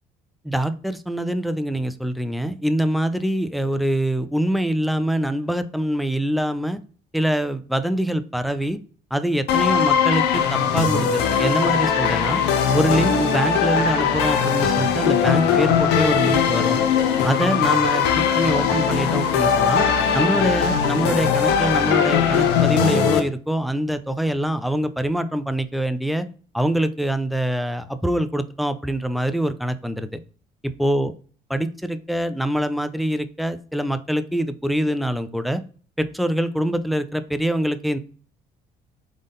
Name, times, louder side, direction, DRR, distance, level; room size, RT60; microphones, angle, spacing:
voice 1, 0.4-6.8 7.1-8.8 9.1-12.4 12.7-16.8 17.2-19.8 20.1-26.3 26.5-30.1 30.6-31.1 31.5-35.6 36.0-38.0, right 1 dB, ahead, 11 dB, 0.3 m, -24 dB
sound 1, 9.5-23.2, left 7 dB, 85° left, 0.6 m, -20 dB
3.8 x 3.7 x 3.5 m, 0.42 s
cardioid pair, 110°, 17 cm